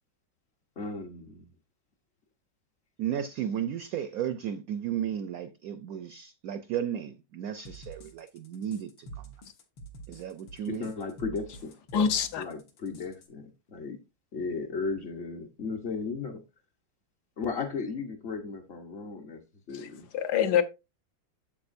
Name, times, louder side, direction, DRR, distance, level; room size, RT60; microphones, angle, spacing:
voice 1, 0.8-1.5 10.6-11.7 12.4-14.0 14.3-16.4 17.4-19.4 19.7-20.1, left 4 dB, 45° left, 0.9 m, -35 dB
voice 2, 3.0-9.3 10.1-10.9, right 9 dB, 75° right, 0.8 m, -34 dB
sound 1, 7.7-13.3, right 3 dB, 80° left, 2.0 m, -47 dB
voice 3, 11.9-12.4 19.7-20.6, left 8 dB, 65° left, 1.3 m, -26 dB
8.8 x 7.5 x 2.5 m
omnidirectional pair, 2.0 m